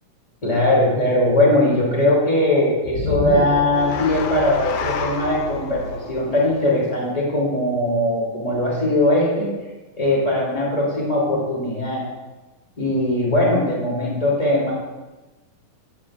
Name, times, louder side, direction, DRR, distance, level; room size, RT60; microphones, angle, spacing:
voice 1, 0.4-9.5 10.0-12.0 12.7-14.7, left 1 dB, 10° left, -5 dB, 2.2 m, -20 dB
sound 1, 2.8-7.2, left 6 dB, 85° left, 2.0 m, -28 dB
12.0 x 10.5 x 2.5 m, 1.1 s
omnidirectional pair, 4.7 m